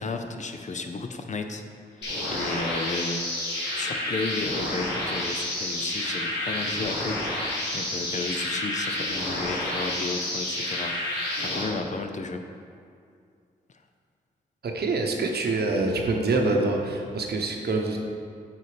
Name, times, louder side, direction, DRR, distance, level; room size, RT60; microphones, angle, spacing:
voice 1, 0.0-1.6 2.0-3.3 3.7-7.3 7.7-11.0 11.4-12.4, left 3 dB, 45° left, 6 dB, 0.6 m, -33 dB
sound 1, 2.0-11.6, left 1 dB, 75° left, 1.8 m, -30 dB
voice 2, 2.0-2.6 11.4-11.5 14.6-18.0, right 3 dB, 65° right, 2 dB, 1.0 m, -26 dB
8.5 x 4.1 x 5.0 m, 2.3 s
cardioid pair, 60°, 18 cm